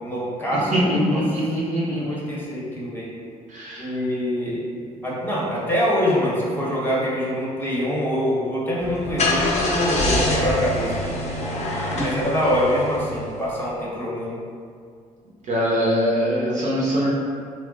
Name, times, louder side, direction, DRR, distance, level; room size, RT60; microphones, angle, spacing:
voice 1, 0.0-1.2 1.9-3.1 3.8-4.6 5.0-11.2 12.0-14.3, equal, 10° left, -7 dB, 0.8 m, -24 dB
voice 2, 0.7-2.2 3.5-3.9 11.9-12.1 15.5-17.1, equal, 40° right, -6 dB, 0.6 m, -22 dB
Car / Engine starting, 8.8-13.5, left 2 dB, 40° left, 0.6 m, -25 dB
2.8 x 2.1 x 2.5 m, 2.2 s
figure-of-eight pair, 45°, 18 cm